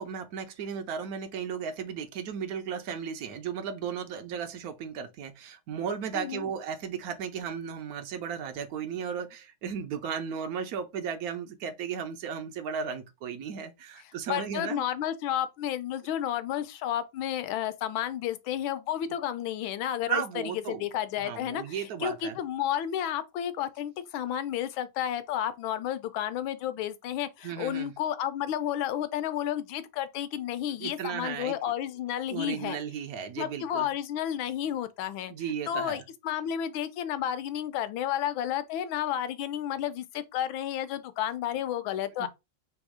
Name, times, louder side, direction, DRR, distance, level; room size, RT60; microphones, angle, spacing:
voice 1, 0.0-14.8 20.1-20.9 21.2-22.4 27.4-27.9 30.7-31.5 32.3-33.9 35.3-36.0 42.2-42.3, right 7 dB, 75° right, 0.8 m, -35 dB
voice 2, 6.1-6.5 14.3-20.2 20.7-32.8 33.4-35.3 35.7-42.3, left 11 dB, 80° left, 1.3 m, -31 dB
3.6 x 3.0 x 4.8 m
omnidirectional pair, 2.2 m